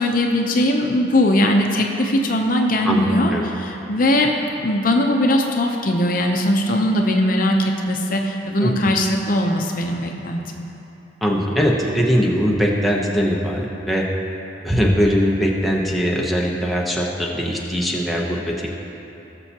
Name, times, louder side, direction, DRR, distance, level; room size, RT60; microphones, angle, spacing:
voice 1, 0.0-4.4 4.6-10.4, left 1 dB, 45° left, 2 dB, 0.7 m, -20 dB
voice 2, 2.8-3.4 8.6-8.9 11.2-14.1 14.6-18.7, equal, ahead, -3 dB, 0.8 m, -21 dB
18.0 x 6.9 x 2.9 m, 3.0 s
head